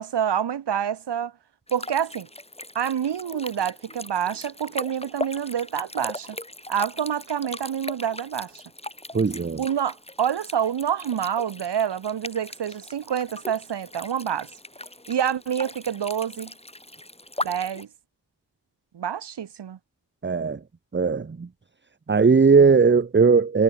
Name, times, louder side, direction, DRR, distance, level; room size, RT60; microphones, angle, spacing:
voice 1, 0.0-1.3 1.7-2.3 2.7-6.4 6.7-8.6 9.6-14.5 15.1-16.5 17.4-17.9 18.9-19.8, right 9 dB, 70° right, 1.3 m, -27 dB
sound 1, 1.7-17.8, left 1 dB, 15° left, 3.9 m, -39 dB
voice 2, 9.1-9.6 20.2-20.6 20.9-21.5 22.1-23.6, right 5 dB, 25° right, 0.9 m, -18 dB
cardioid pair, 55°, 43 cm